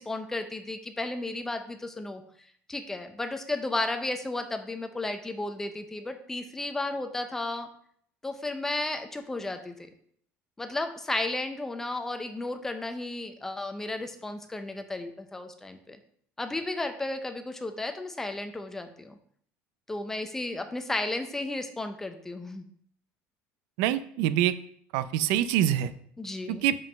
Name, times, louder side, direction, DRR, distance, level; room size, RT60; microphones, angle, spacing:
voice 1, 0.0-2.2 2.7-7.7 8.2-9.9 10.6-16.0 16.4-19.1 19.9-22.6 26.2-26.7, left 2 dB, 10° left, 7 dB, 0.6 m, -33 dB
voice 2, 23.8-24.6 24.9-25.9 26.5-26.8, right 12 dB, 85° right, 15 dB, 0.5 m, -25 dB
5.4 x 5.2 x 6.3 m, 0.62 s
cardioid pair, 175°, 5 cm